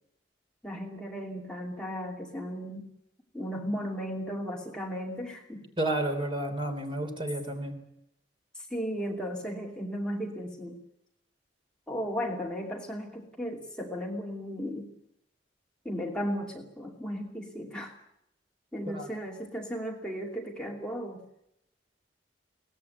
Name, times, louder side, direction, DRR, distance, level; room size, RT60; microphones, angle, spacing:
voice 1, 0.6-2.9 3.3-5.7 8.7-10.8 11.9-14.9 15.8-18.0 18.7-21.2, equal, 5° left, -1 dB, 2.7 m, -35 dB
voice 2, 5.8-7.8 18.9-19.1, right 1 dB, 30° right, 5 dB, 3.4 m, -31 dB
22.5 x 18.5 x 9.7 m, 0.79 s
head